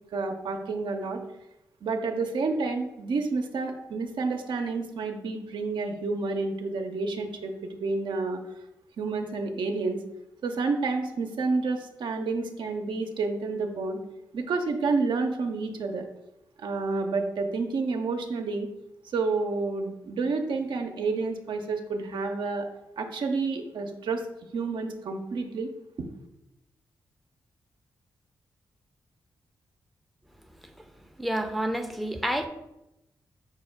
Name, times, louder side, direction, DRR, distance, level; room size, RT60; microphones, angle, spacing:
voice 1, 0.1-1.2 1.8-8.4 9.0-10.0 10.4-14.0 14.3-16.1 16.6-18.7 19.1-22.7 23.0-24.2 24.5-25.7, right 3 dB, 70° right, 4 dB, 0.5 m, -29 dB
voice 2, 31.2-32.5, right 1 dB, ahead, 5 dB, 0.6 m, -29 dB
5.6 x 2.0 x 4.6 m, 0.90 s
supercardioid pair, 40°, 8 cm